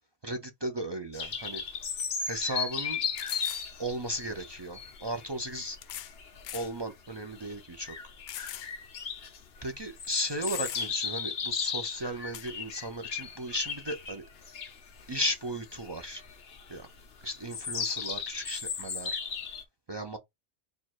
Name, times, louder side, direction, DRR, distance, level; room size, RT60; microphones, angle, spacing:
voice 1, 0.2-1.6 2.2-3.0 3.8-5.8 6.5-8.0 9.6-14.2 15.1-16.2 16.7-16.9 17.2-19.2 19.9-20.2, equal, 40° right, 0.3 m, -35 dB
sound 1, 1.1-19.6, left 6 dB, 60° left, 1.1 m, -36 dB
sound 2, 1.4-1.5 2.0-2.1 3.2-3.7 4.8-4.9 5.8-6.2 6.4-6.7 7.2-7.3 8.3-8.7 9.1-9.2 10.0-10.1 10.5-11.1 12.3-12.5, left 12 dB, 85° left, 0.9 m, -41 dB
4.5 x 2.4 x 4.3 m
omnidirectional pair, 1.2 m